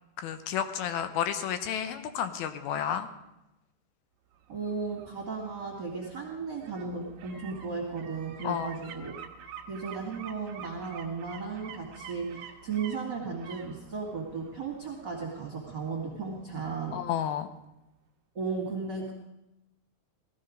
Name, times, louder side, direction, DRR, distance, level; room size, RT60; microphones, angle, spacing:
voice 1, 0.2-3.1 8.4-8.7 16.9-17.5, left 9 dB, 75° left, 9 dB, 2.7 m, -31 dB
sound 1, 4.3-17.2 17.5-17.6, right 8 dB, 65° right, 1.9 m, -49 dB
voice 2, 4.5-9.1 9.7-17.0 18.3-19.1, right 4 dB, 35° right, -1 dB, 2.3 m, -35 dB
18.5 x 14.0 x 5.2 m, 0.90 s
omnidirectional pair, 4.6 m